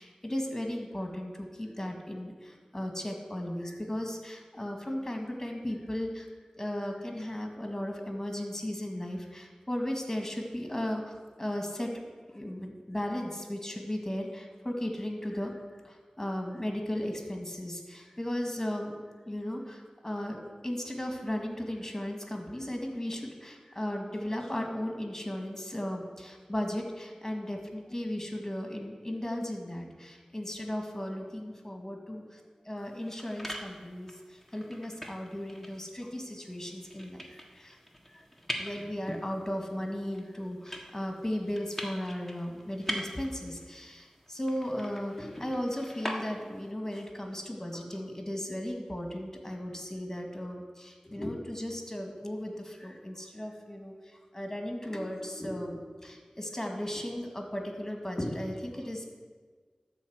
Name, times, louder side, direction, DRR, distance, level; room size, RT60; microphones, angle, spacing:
voice 1, 0.0-6.3 6.6-11.1 11.4-15.6 15.8-18.9 19.3-20.4 20.6-37.8 38.1-38.2 38.6-59.1, left 1 dB, 20° left, 3 dB, 1.9 m, -36 dB
sound 1, 32.8-46.7, equal, 5° left, 1.4 m, -43 dB
12.0 x 4.2 x 7.9 m, 1.5 s
wide cardioid pair, 55°, 2 cm